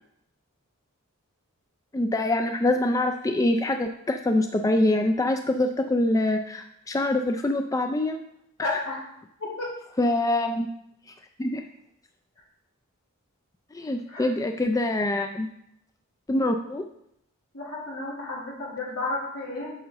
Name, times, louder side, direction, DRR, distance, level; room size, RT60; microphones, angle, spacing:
voice 1, 1.9-8.2 8.6-8.7 10.0-10.7 11.4-11.6 13.7-15.5 16.3-16.8, left 1 dB, 15° left, 5 dB, 0.3 m, -24 dB
voice 2, 8.6-9.0 9.4-9.8 14.1-14.3 17.5-19.7, left 2 dB, 85° left, -6 dB, 3.2 m, -32 dB
8.9 x 6.5 x 3.0 m, 0.75 s
head